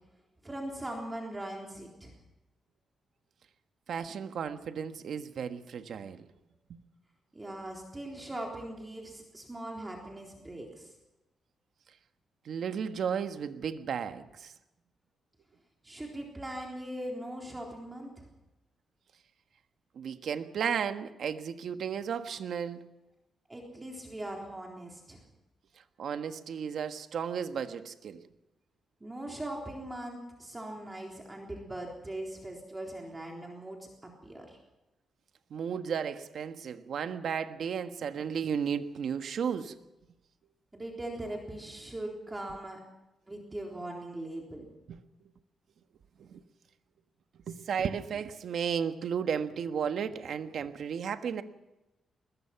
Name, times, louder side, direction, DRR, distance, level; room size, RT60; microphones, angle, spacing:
voice 1, 0.4-2.1 7.3-10.9 15.8-18.3 23.5-25.2 29.0-34.6 40.7-42.8 43.3-44.7, right 1 dB, 15° right, 3.7 m, -40 dB
voice 2, 3.9-6.3 12.4-14.5 19.9-22.9 26.0-28.3 35.5-39.8 44.9-45.0 46.2-46.4 47.5-51.4, right 7 dB, 65° right, 1.4 m, -34 dB
21.5 x 20.5 x 5.9 m
cardioid pair, 110°, 0 cm